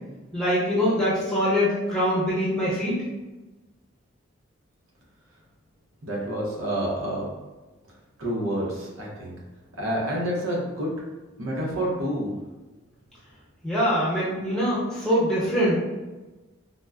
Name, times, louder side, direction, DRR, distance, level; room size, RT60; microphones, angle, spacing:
voice 1, 0.3-3.0 13.6-15.7, equal, 5° left, -10 dB, 0.8 m, -23 dB
voice 2, 6.0-7.2 8.2-9.3 9.8-10.9 11.4-12.3, right 1 dB, 85° right, -3 dB, 0.7 m, -28 dB
3.7 x 2.0 x 2.3 m, 1.2 s
head